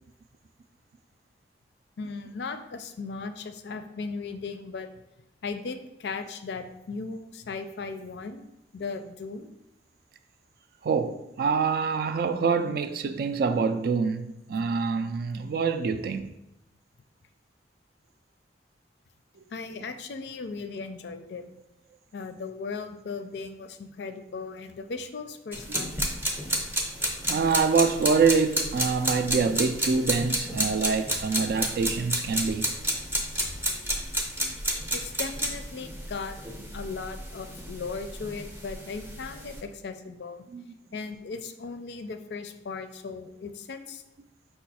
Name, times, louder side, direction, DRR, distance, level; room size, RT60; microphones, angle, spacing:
voice 1, 2.0-4.9 5.4-8.4 8.7-9.5 19.5-21.5 22.1-26.1 34.9-36.4 36.7-40.4 40.9-44.0, left 4 dB, 65° left, 0.4 m, -37 dB
voice 2, 10.8-16.3 25.7-25.8 27.2-32.7 40.5-40.6, right 5 dB, 55° right, 0.3 m, -25 dB
sound 1, 25.5-39.6, equal, 10° right, 0.6 m, -31 dB
5.5 x 2.3 x 4.2 m
head